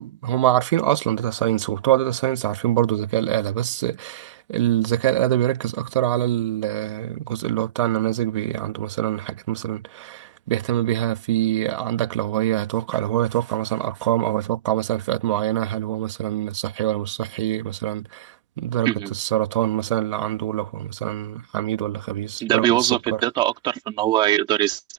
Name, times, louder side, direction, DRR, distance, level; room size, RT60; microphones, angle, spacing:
voice 1, 0.0-23.2, right 13 dB, 50° right, 2.2 m, -24 dB
voice 2, 22.4-24.8, right 14 dB, 25° right, 3.7 m, -22 dB
hypercardioid pair, 150°, 20 cm